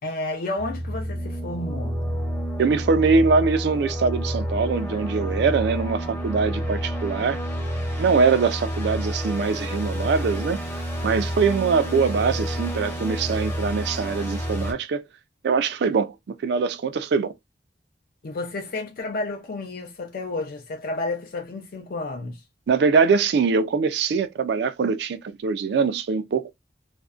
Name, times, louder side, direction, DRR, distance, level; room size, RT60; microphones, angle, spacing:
voice 1, 0.0-2.0 18.2-22.4, left 2 dB, 55° left, 0.5 m, -31 dB
sound 1, 0.6-14.7, equal, 15° left, 0.6 m, -29 dB
voice 2, 2.6-7.4 8.0-10.6 11.0-15.0 15.4-17.3 22.7-26.5, right 5 dB, 65° right, 0.4 m, -22 dB
2.5 x 2.1 x 2.4 m
head